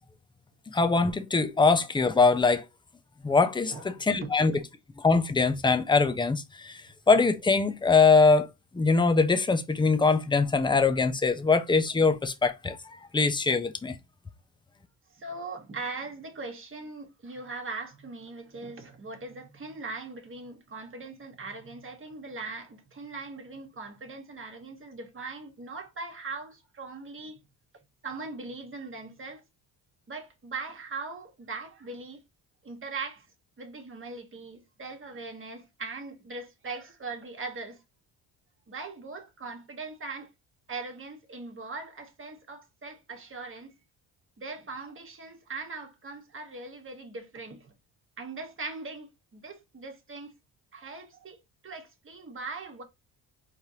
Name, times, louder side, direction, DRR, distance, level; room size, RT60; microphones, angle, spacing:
voice 1, 0.7-2.6 3.2-4.5 5.0-6.8 7.1-8.5 8.7-12.8 13.1-13.9, left 4 dB, 10° left, 0.6 m, -22 dB
voice 2, 3.6-4.3 15.1-27.4 28.0-29.4 30.1-32.2 32.6-33.3 33.6-37.8 38.7-40.3 40.7-43.8 44.4-47.7 48.2-50.3 50.7-52.8, right 3 dB, 30° right, 1.3 m, -40 dB
4.5 x 3.3 x 2.8 m
cardioid pair, 85°, 40 cm